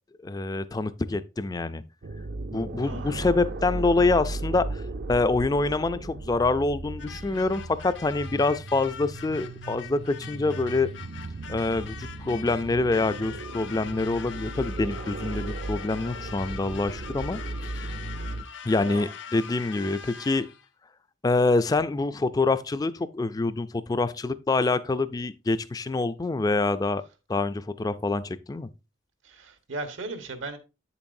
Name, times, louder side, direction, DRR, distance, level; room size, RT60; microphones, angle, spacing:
voice 1, 0.2-1.8 2.5-4.8 5.1-10.9 11.5-17.4 18.6-20.5 21.2-27.0 27.3-28.7, left 3 dB, 20° left, 0.3 m, -26 dB
sound 1, 2.0-18.4, right 2 dB, 55° right, 0.5 m, -36 dB
sound 2, 7.0-20.7, left 7 dB, 65° left, 0.6 m, -43 dB
voice 2, 29.2-30.6, right 2 dB, 85° right, 1.2 m, -37 dB
8.4 x 7.0 x 2.6 m
head